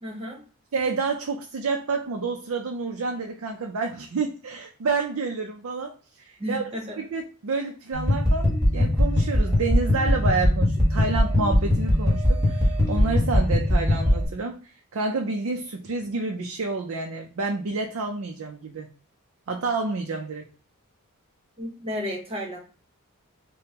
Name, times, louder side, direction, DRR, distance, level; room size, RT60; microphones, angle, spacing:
voice 1, 0.0-0.4 6.4-7.0 21.6-22.6, left 1 dB, 25° right, 0 dB, 1.0 m, -32 dB
voice 2, 0.7-6.6 7.0-18.9 19.5-20.5, right 4 dB, 65° right, 3 dB, 0.5 m, -29 dB
sound 1, 7.9-14.3, left 1 dB, 5° right, 1.5 m, -21 dB
5.1 x 2.2 x 2.8 m, 0.39 s
head